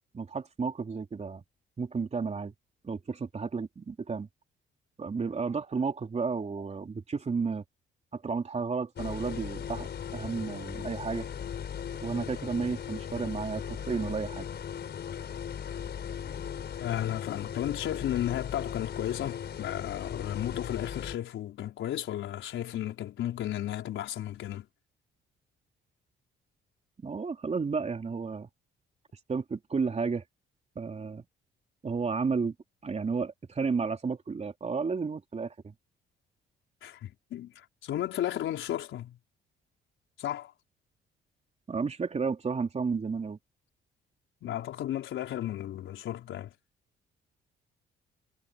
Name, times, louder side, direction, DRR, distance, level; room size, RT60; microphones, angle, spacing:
voice 1, 0.1-1.4 1.8-2.5 2.8-4.3 5.0-7.6 8.1-11.3 12.0-14.5 27.0-28.5 29.3-30.2 30.8-31.2 31.8-32.5 32.8-35.7 41.7-43.4, right 5 dB, 35° right, 3.5 m, -32 dB
sound 1, 9.0-21.2, left 8 dB, 55° left, 4.9 m, -38 dB
voice 2, 16.8-24.7 36.8-39.2 40.2-40.5 44.4-46.5, left 12 dB, 80° left, 5.1 m, -34 dB
cardioid pair, 90°, 20 cm